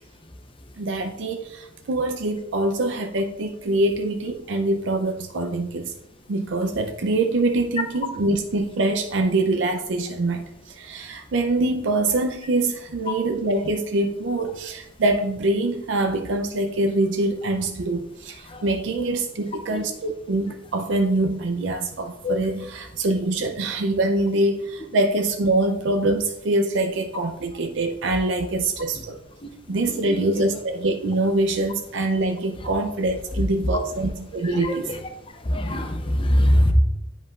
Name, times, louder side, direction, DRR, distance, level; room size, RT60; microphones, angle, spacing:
voice 1, 0.8-5.9 6.3-29.2 29.7-34.9, right 2 dB, 65° right, 5 dB, 0.5 m, -24 dB
voice 2, 30.0-30.4 34.5-34.8 35.5-36.7, left 1 dB, 25° left, 6 dB, 0.7 m, -22 dB
9.4 x 5.2 x 2.4 m, 0.90 s
head